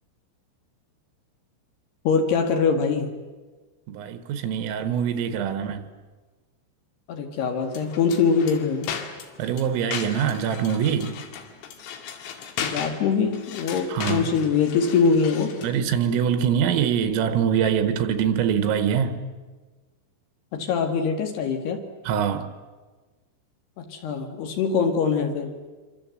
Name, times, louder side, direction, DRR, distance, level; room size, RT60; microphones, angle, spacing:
voice 1, 2.1-3.1 7.1-8.9 12.6-15.6 20.5-21.8 23.8-25.5, left 5 dB, 60° left, 3.5 m, -23 dB
voice 2, 3.9-5.9 9.4-11.3 13.9-14.3 15.6-19.2 22.1-22.5, right 8 dB, 85° right, 4.1 m, -24 dB
sound 1, 7.7-15.8, left 8 dB, 80° left, 4.7 m, -36 dB
26.0 x 25.0 x 7.9 m
omnidirectional pair, 5.9 m